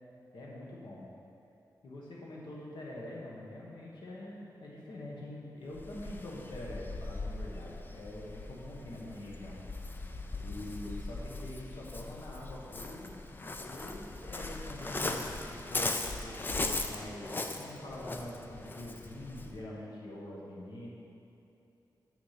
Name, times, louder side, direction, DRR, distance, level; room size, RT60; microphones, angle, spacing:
voice 1, 0.3-1.1 1.8-9.6 10.4-13.1 13.6-20.9, left 1 dB, 80° left, -4 dB, 1.3 m, -45 dB
Waves surf, 5.7-19.6, left 2 dB, 25° left, 0.4 m, -39 dB
7.1 x 6.1 x 5.9 m, 2.8 s
wide cardioid pair, 175°, 8 cm